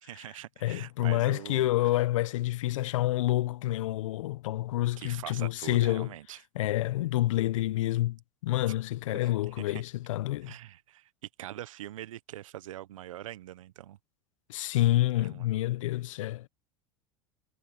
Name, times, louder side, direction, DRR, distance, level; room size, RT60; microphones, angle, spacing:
voice 1, 0.0-2.0 5.0-6.4 9.4-9.8 10.4-14.0 15.2-15.5, right 13 dB, 80° right, 1.1 m, -43 dB
voice 2, 0.6-6.1 6.5-10.5 14.5-16.5, left 15 dB, 75° left, 0.9 m, -28 dB
hypercardioid pair, 85°, 17 cm